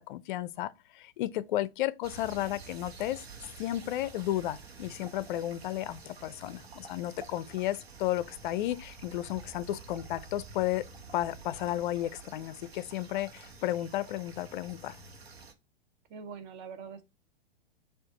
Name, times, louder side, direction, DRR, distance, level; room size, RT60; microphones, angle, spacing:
voice 1, 0.0-3.2 3.6-10.9 11.1-15.0, left 14 dB, 55° left, 0.4 m, -33 dB
sound 1, 2.0-15.5, right 4 dB, 90° right, 1.0 m, -49 dB
voice 2, 16.1-17.0, right 6 dB, 35° right, 0.8 m, -43 dB
5.0 x 2.5 x 3.6 m
hypercardioid pair, 115°, 31 cm